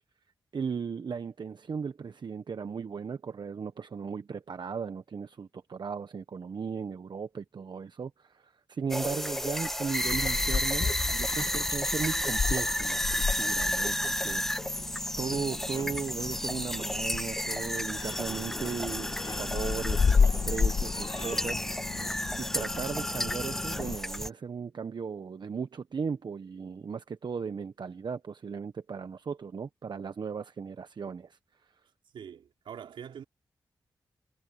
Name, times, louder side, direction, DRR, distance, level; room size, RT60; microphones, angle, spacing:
voice 1, 0.5-14.9 15.2-21.6 22.4-31.4, right 6 dB, 65° right, 1.1 m, -36 dB
sound 1, 8.9-24.3, equal, 5° left, 0.3 m, -32 dB
Meow, 10.0-23.9, left 5 dB, 65° left, 1.3 m, -32 dB
sound 2, 18.1-24.0, left 2 dB, 30° left, 7.2 m, -45 dB
voice 2, 32.1-33.2, right 8 dB, 85° right, 4.8 m, -44 dB
cardioid pair, 45°, 8 cm